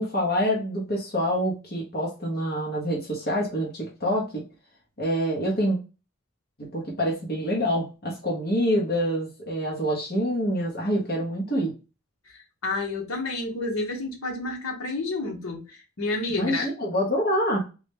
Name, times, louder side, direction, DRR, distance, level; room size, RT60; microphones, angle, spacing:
voice 1, 0.0-4.4 5.0-5.8 6.7-11.7 16.4-17.6, equal, 45° left, 0.9 m, -26 dB
voice 2, 12.3-16.7, left 3 dB, 80° left, 1.0 m, -30 dB
3.8 x 2.2 x 3.3 m
head